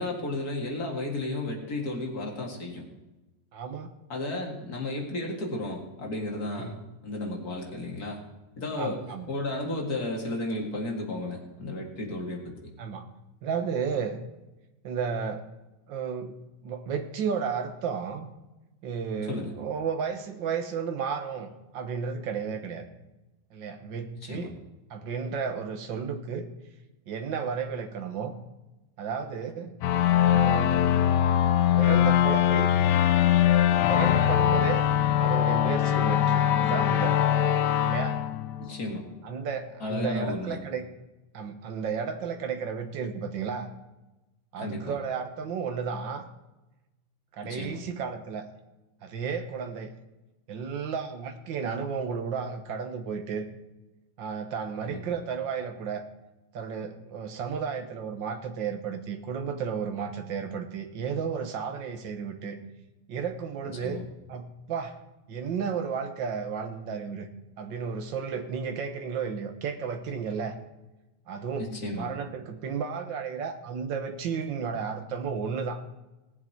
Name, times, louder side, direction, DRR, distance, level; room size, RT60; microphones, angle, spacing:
voice 1, 0.0-2.9 4.1-6.7 7.0-8.2 8.6-9.0 9.3-12.7 19.3-19.6 24.2-24.5 38.6-39.0 39.8-40.6 44.6-44.9 47.4-47.8 54.8-55.0 63.8-64.0 71.6-72.1, left 2 dB, 45° left, 0 dB, 2.4 m, -33 dB
voice 2, 3.5-3.9 6.6-6.8 8.8-9.3 12.8-13.1 13.4-14.2 14.8-15.4 15.9-16.4 16.6-18.3 18.8-22.9 23.5-24.6 24.9-26.5 27.1-28.4 29.0-29.7 30.2-30.8 31.8-32.7 33.9-34.8 35.2-37.2 37.8-38.2 39.2-40.9 41.3-43.7 44.5-46.3 47.3-48.4 49.0-49.9 50.5-53.5 54.2-56.0 56.5-62.6 63.1-64.0 64.3-65.0 65.3-67.3 67.6-70.6 71.3-71.7 72.0-75.8, right 6 dB, 65° right, 6 dB, 1.8 m, -33 dB
sound 1, 29.8-39.1, left 10 dB, 70° left, 1.1 m, -22 dB
19.0 x 7.5 x 4.6 m, 1.1 s
omnidirectional pair, 2.3 m